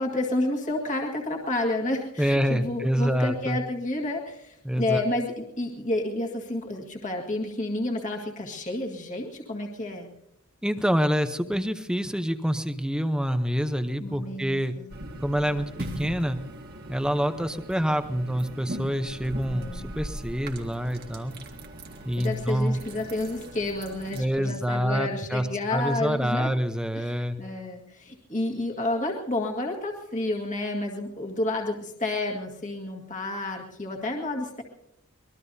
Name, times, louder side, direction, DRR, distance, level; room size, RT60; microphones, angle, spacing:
voice 1, 0.0-10.1 14.0-14.9 19.5-19.9 22.2-26.5 27.0-34.6, left 2 dB, 35° left, 0 dB, 1.9 m, -30 dB
voice 2, 2.2-3.6 4.6-5.0 10.6-14.7 15.2-16.4 16.9-21.3 22.1-22.8 24.1-27.4, equal, 5° right, 9 dB, 0.7 m, -27 dB
sound 1, 14.9-24.2, right 1 dB, 45° right, 1.7 m, -40 dB
24.0 x 20.5 x 2.7 m, 0.86 s
head